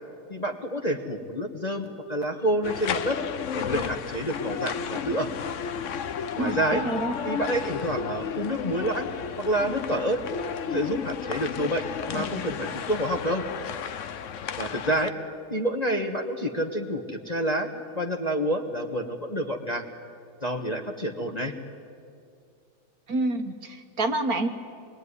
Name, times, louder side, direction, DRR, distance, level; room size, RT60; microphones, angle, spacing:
voice 1, 0.3-3.2 3.5-5.3 6.4-6.8 7.2-9.1 9.4-10.2 10.6-13.4 14.6-15.1 15.5-19.9 20.4-21.5, right 1 dB, 25° left, 3 dB, 1.3 m, -28 dB
sound 1, 2.6-15.1, left 7 dB, 55° left, 0.9 m, -33 dB
voice 2, 6.4-7.2 23.1-24.5, right 2 dB, 50° right, 6 dB, 1.7 m, -27 dB
26.0 x 21.5 x 9.8 m, 2.3 s
omnidirectional pair, 2.1 m